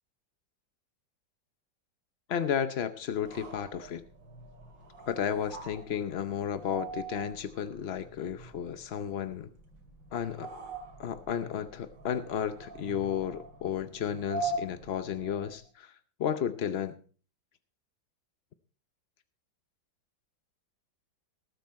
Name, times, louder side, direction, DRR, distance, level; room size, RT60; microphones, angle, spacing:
voice 1, 2.3-4.0 5.1-9.5 10.1-10.5 11.0-15.9 16.2-16.9, left 8 dB, 70° left, 12 dB, 0.5 m, -33 dB
sound 1, 3.1-15.7, right 3 dB, 75° right, 2.8 m, -43 dB
19.0 x 8.3 x 4.2 m, 0.39 s
omnidirectional pair, 2.0 m